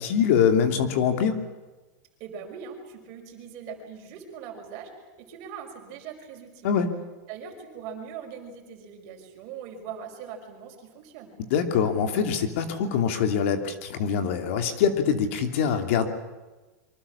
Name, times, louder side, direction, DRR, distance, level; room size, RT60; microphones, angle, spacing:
voice 1, 0.0-1.4 6.6-6.9 11.5-16.1, left 7 dB, 55° left, 7 dB, 3.0 m, -24 dB
voice 2, 2.2-4.9 5.2-6.7 7.3-11.3, right 7 dB, 35° right, 4 dB, 5.4 m, -41 dB
26.0 x 24.5 x 7.2 m, 1.2 s
supercardioid pair, 180°, 8 cm